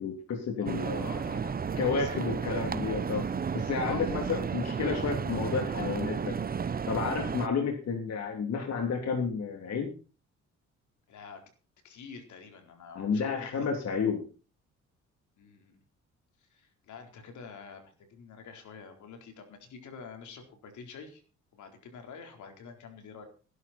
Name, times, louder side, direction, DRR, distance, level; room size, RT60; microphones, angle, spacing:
voice 1, 0.0-1.1 1.8-3.3 3.5-6.4 6.9-9.9 12.9-14.3, left 5 dB, 60° left, 3 dB, 3.1 m, -31 dB
voice 2, 0.6-1.5 1.8-2.4 3.8-4.2 7.2-7.4 11.1-11.4 11.8-13.7 15.4-15.8 16.5-21.2 21.5-23.3, left 5 dB, 75° left, 5 dB, 4.2 m, -47 dB
sound 1, 0.7-7.5, right 6 dB, 30° right, 0.8 m, -33 dB
18.0 x 11.5 x 4.4 m, 0.36 s
cardioid pair, 90°, 30 cm